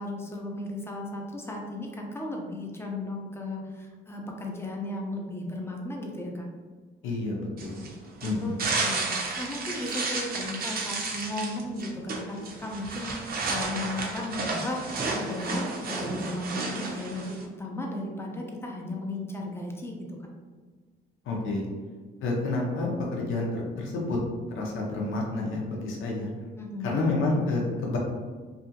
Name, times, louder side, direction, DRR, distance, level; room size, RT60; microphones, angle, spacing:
voice 1, 0.0-6.5 8.4-20.3 26.6-27.0, left 1 dB, 10° left, 0 dB, 0.6 m, -35 dB
voice 2, 7.0-7.8 8.2-8.5 21.3-21.7 22.2-24.2 24.5-26.3 26.8-28.0, left 2 dB, 80° left, -2 dB, 0.7 m, -29 dB
sound 1, 7.6-17.5, right 3 dB, 50° right, 0.5 m, -32 dB
2.7 x 2.4 x 2.7 m, 1.4 s
cardioid pair, 90°, 20 cm